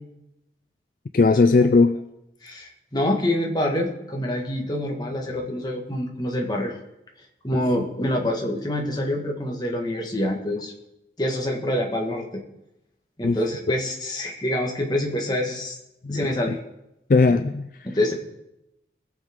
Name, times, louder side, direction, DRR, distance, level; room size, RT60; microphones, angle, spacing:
voice 1, 1.1-2.0 13.2-13.4 16.0-16.6 17.1-17.7, left 3 dB, 50° left, 10 dB, 0.4 m, -18 dB
voice 2, 2.4-6.7 7.4-10.7 11.2-12.2 13.2-15.8 16.1-16.6 17.8-18.1, left 1 dB, 25° left, 1 dB, 1.7 m, -26 dB
21.0 x 7.3 x 3.7 m, 0.89 s
head